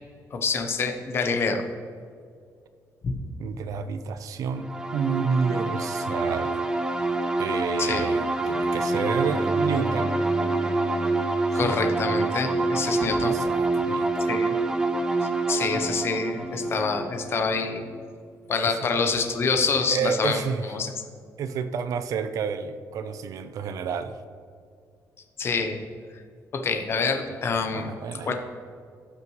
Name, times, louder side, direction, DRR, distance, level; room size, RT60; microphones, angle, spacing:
voice 1, 0.3-1.6 3.0-3.2 7.8-8.1 11.5-13.4 14.3-14.5 15.2-17.8 18.5-20.4 20.7-20.9 25.4-25.8 26.5-27.9 28.2-28.3, left 4 dB, 40° left, 5 dB, 0.8 m, -26 dB
voice 2, 3.4-6.6 7.4-10.1 11.5-11.7 13.2-14.3 18.6-18.8 19.9-20.6 21.4-24.2 27.7-28.3, right 6 dB, 60° right, 10 dB, 0.5 m, -30 dB
sound 1, 4.6-18.1, right 2 dB, 10° right, 0.5 m, -26 dB
Bowed string instrument, 8.6-12.7, right 1 dB, 80° right, 1.3 m, -35 dB
15.5 x 5.8 x 3.1 m, 2.2 s
cardioid pair, 165°, 7 cm